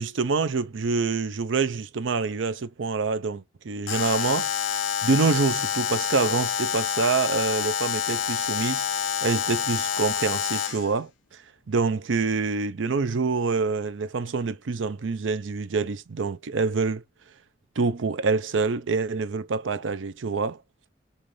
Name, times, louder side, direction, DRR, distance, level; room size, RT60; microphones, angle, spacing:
voice 1, 0.0-4.5 5.0-11.1 11.7-17.0 17.8-20.6, right 4 dB, 85° right, 0.5 m, -26 dB
Alarm, 3.9-10.9, left 7 dB, 85° left, 0.6 m, -27 dB
5.5 x 2.5 x 3.2 m
head